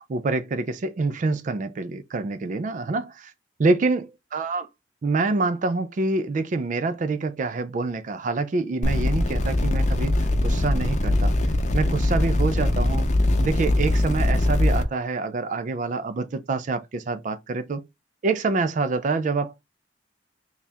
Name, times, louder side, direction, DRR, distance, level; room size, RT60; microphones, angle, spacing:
voice 1, 0.1-3.3 3.6-4.7 5.0-10.1 10.4-11.3 11.7-13.1 13.4-17.8 18.2-19.6, right 3 dB, 45° right, 0.4 m, -26 dB
sound 1, 8.8-14.8, left 1 dB, 40° left, 0.6 m, -22 dB
3.4 x 2.4 x 4.1 m
head